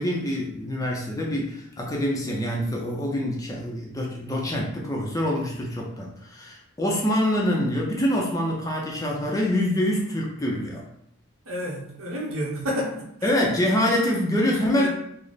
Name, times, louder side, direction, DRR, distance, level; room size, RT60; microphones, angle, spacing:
voice 1, 0.0-10.8 13.2-14.9, left 1 dB, 15° left, -2 dB, 0.5 m, -25 dB
voice 2, 11.5-13.4 14.7-14.9, left 1 dB, 70° right, -2 dB, 1.0 m, -30 dB
3.2 x 2.0 x 3.9 m, 0.72 s
head